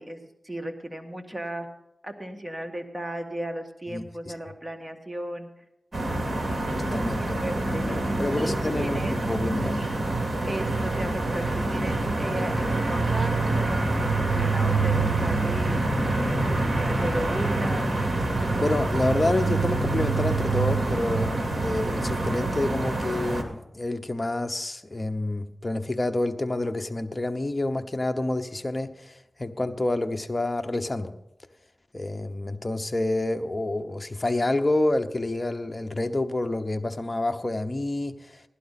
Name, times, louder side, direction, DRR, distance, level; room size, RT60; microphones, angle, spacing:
voice 1, 0.0-1.7 2.0-5.5 7.0-8.0 8.4-9.2 10.5-17.8, right 1 dB, 15° right, 3 dB, 1.8 m, -36 dB
sound 1, 5.9-23.4, right 2 dB, 45° right, 2.5 m, -26 dB
voice 2, 6.8-7.2 8.2-9.8 18.6-31.1 31.9-38.4, left 2 dB, 30° left, 7 dB, 0.9 m, -28 dB
16.5 x 11.5 x 4.1 m, 0.87 s
wide cardioid pair, 65°, 0 cm